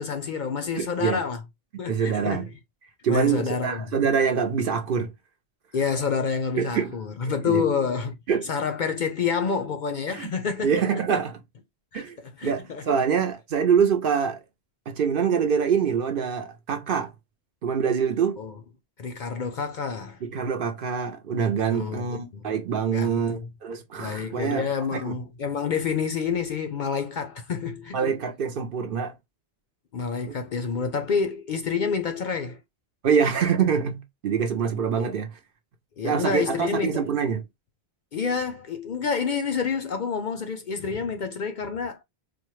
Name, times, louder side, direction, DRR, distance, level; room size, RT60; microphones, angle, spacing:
voice 1, 0.0-1.4 1.8-2.5 3.1-3.9 5.7-8.1 8.5-10.8 11.9-12.8 18.4-18.6 19.0-20.2 21.7-22.1 22.3-22.5 22.9-23.5 24.0-28.2 29.9-32.6 35.0-35.1 36.0-37.1 38.1-42.0, left 5 dB, 55° left, 0.6 m, -28 dB
voice 2, 0.8-1.2 1.9-2.5 3.0-5.1 6.6-7.0 7.5-7.6 8.3-8.5 10.1-10.3 10.6-11.4 11.9-12.2 12.4-14.4 14.9-17.1 17.6-18.4 20.2-25.1 27.9-29.1 30.3-30.4 33.0-35.3 36.0-37.4, right 7 dB, 60° right, 0.8 m, -25 dB
4.3 x 2.2 x 3.0 m
omnidirectional pair, 1.1 m